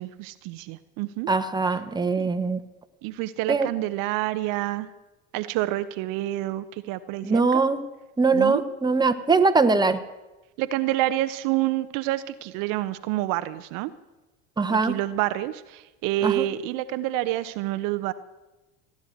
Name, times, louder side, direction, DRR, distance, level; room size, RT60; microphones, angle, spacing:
voice 1, 0.0-1.3 2.2-2.3 3.0-4.9 5.3-7.6 8.3-8.6 10.6-13.9 14.7-18.1, right 15 dB, 60° right, 12 dB, 0.8 m, -28 dB
voice 2, 1.3-2.6 3.5-3.7 7.2-7.8 8.2-10.0 14.6-15.0 16.2-16.5, right 4 dB, 10° right, 9 dB, 1.1 m, -22 dB
16.0 x 9.7 x 7.9 m, 1.1 s
hypercardioid pair, 75°, 37 cm